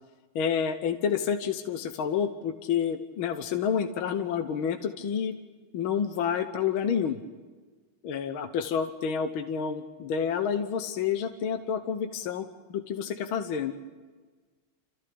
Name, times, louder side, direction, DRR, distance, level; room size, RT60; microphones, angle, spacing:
voice 1, 0.4-5.4 5.7-7.2 8.0-13.7, left 7 dB, 75° left, 8 dB, 1.8 m, -29 dB
28.5 x 15.0 x 8.7 m, 1.4 s
omnidirectional pair, 2.3 m